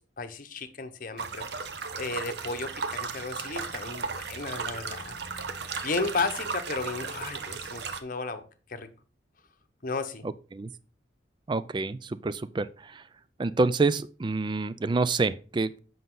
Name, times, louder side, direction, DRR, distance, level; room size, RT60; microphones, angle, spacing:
voice 1, 0.0-1.5 2.0-5.1 5.8-8.4 8.7-8.9 9.8-10.2, left 3 dB, 45° left, 0.8 m, -34 dB
sound 1, 1.2-8.0, right 5 dB, 60° right, 0.7 m, -35 dB
voice 2, 11.5-13.0 13.4-15.8, right 3 dB, 25° right, 0.3 m, -27 dB
7.8 x 5.3 x 3.8 m
head